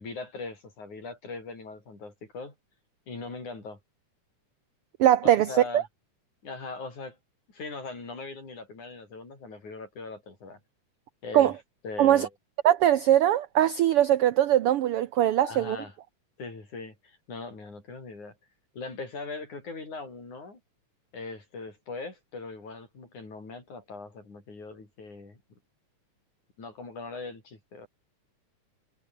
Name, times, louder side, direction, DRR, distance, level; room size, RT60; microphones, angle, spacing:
voice 1, 0.0-2.5 3.1-3.8 5.5-5.8 6.4-7.2 7.5-10.6 11.2-11.6 11.8-12.3 15.4-16.0 16.4-18.4 18.7-20.6 21.1-25.4 26.6-27.9, left 3 dB, 70° left, 8.8 m, -40 dB
voice 2, 5.0-5.5 5.7-5.8 11.3-11.5 12.0-12.3 12.6-15.8, right 12 dB, 90° right, 1.2 m, -21 dB
omnidirectional pair, 3.5 m